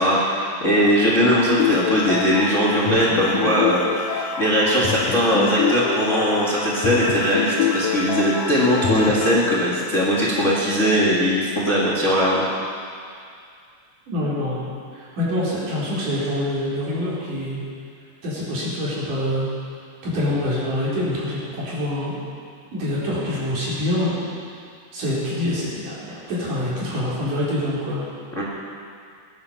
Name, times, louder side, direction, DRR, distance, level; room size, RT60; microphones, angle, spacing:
voice 1, 0.0-12.4 28.4-28.5, equal, 25° left, -6 dB, 1.9 m, -20 dB
sound 1, 1.6-9.4, left 6 dB, 70° left, 2.6 m, -26 dB
voice 2, 14.1-14.6 14.9-17.6 18.2-19.5 20.0-22.2 22.7-24.2 24.9-28.0, left 1 dB, 65° right, -7 dB, 5.6 m, -25 dB
20.0 x 11.0 x 5.7 m, 2.3 s
omnidirectional pair, 3.9 m